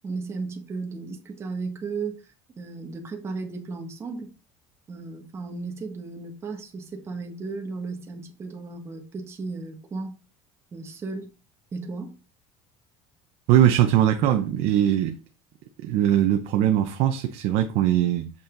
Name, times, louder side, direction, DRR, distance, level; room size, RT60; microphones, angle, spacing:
voice 1, 0.0-2.3 2.6-4.3 4.9-10.1 10.7-11.3 11.7-12.1, right 4 dB, 20° right, 1.3 m, -35 dB
voice 2, 13.5-15.2 15.8-18.3, right 11 dB, 50° right, 0.7 m, -21 dB
7.1 x 5.4 x 3.8 m
cardioid pair, 180°, 13 cm